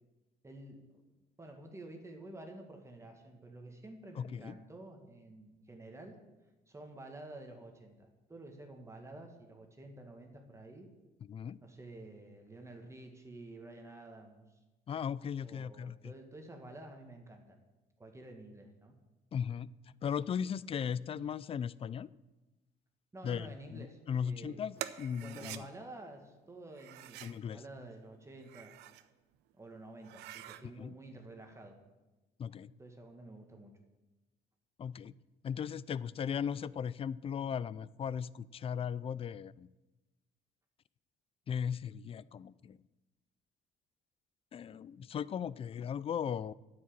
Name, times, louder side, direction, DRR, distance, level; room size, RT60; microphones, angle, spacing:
voice 1, 0.4-0.8 1.4-6.2 6.7-10.9 11.6-14.6 15.4-17.6 18.0-18.9 23.1-24.6 25.1-28.7 29.6-31.8 32.8-33.7, right 2 dB, 15° right, 3 dB, 1.8 m, -50 dB
voice 2, 4.2-4.6 11.3-11.6 14.9-16.1 19.3-19.7 20.0-22.1 23.2-25.7 27.2-27.6 30.8-30.9 32.4-32.7 34.8-35.1 35.4-39.7 41.5-42.8 44.5-46.5, left 7 dB, 35° left, 20 dB, 0.4 m, -37 dB
sound 1, 24.8-25.6 26.7-27.4 28.3-29.1 29.5-29.6 30.0-30.6, right 14 dB, 90° right, 0.7 m, -46 dB
9.7 x 7.6 x 8.9 m, 1.1 s
cardioid pair, 110°, 17 cm